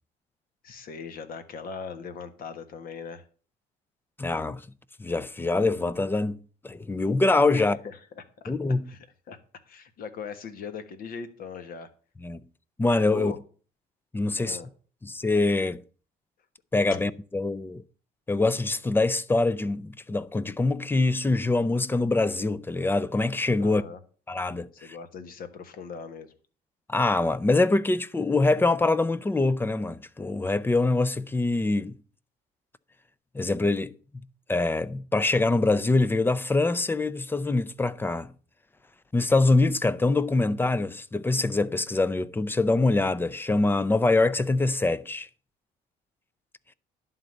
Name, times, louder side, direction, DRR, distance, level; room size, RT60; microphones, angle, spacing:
voice 1, 0.6-3.3 7.5-8.2 8.9-9.4 9.7-11.9 13.1-13.4 14.4-14.7 23.6-24.0 24.7-26.3, left 5 dB, 60° left, 1.5 m, -40 dB
voice 2, 4.2-4.6 5.0-6.4 6.6-7.8 8.5-8.9 12.2-12.4 12.8-13.3 14.1-14.6 15.0-15.8 16.7-17.8 18.3-23.8 24.3-25.0 26.9-31.9 33.3-33.9 34.5-38.3 39.1-45.3, left 2 dB, 10° left, 0.5 m, -24 dB
11.0 x 3.9 x 7.7 m
cardioid pair, 110°, 17 cm